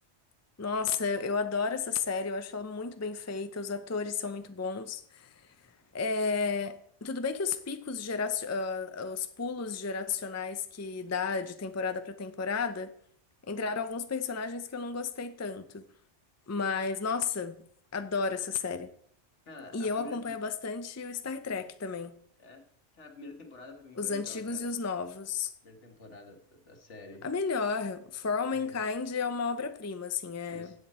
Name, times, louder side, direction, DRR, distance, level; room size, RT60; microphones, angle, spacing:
voice 1, 0.6-5.4 5.9-12.9 13.5-15.8 16.5-17.6 17.9-18.9 19.7-22.2 24.0-25.5 27.2-30.7, left 5 dB, 20° left, 0.5 m, -33 dB
voice 2, 19.5-20.4 22.4-22.6 22.9-24.7 25.6-27.3 28.5-28.8 30.5-30.8, left 2 dB, 75° left, 1.9 m, -48 dB
15.5 x 8.0 x 4.3 m
omnidirectional pair, 1.2 m